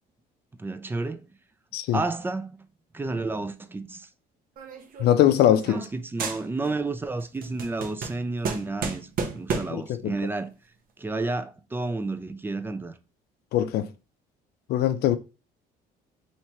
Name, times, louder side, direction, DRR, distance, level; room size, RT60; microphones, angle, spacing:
voice 1, 0.6-1.3 1.9-2.7 2.9-4.1 5.7-9.1 9.3-10.5 11.0-12.9, right 3 dB, 10° right, 0.4 m, -31 dB
sound 1, 4.6-5.9 6.2-6.9 7.2-9.9, right 5 dB, 60° right, 0.8 m, -33 dB
voice 2, 5.0-5.8 9.7-10.1 13.5-13.9 14.7-15.2, left 11 dB, 70° left, 0.5 m, -21 dB
2.9 x 2.9 x 4.3 m
cardioid pair, 110°, 17 cm